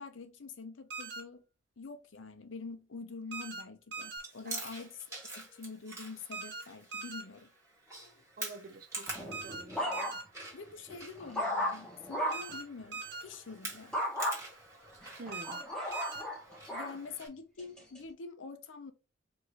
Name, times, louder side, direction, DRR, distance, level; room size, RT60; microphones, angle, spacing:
voice 1, 0.0-1.4 1.8-7.5 10.5-13.9 16.7-18.9, left 4 dB, 85° left, 0.7 m, -46 dB
sound 1, 0.9-1.2 3.3-3.6 3.9-4.2 6.3-6.6 6.9-7.2 9.3-9.6 9.9-10.2 12.3-12.6 12.9-13.2 15.3-15.6 15.9-16.2, right 4 dB, 65° right, 1.2 m, -41 dB
Chewing mastication, 4.2-17.3, right 2 dB, 15° right, 1.6 m, -47 dB
voice 2, 8.4-10.2 15.2-15.6, right 2 dB, 50° right, 0.5 m, -48 dB
sound 2, 9.1-10.4 10.9-12.6 13.9-14.4 15.0-17.0 17.6-18.0, equal, 5° left, 1.0 m, -35 dB
4.6 x 2.7 x 3.2 m
head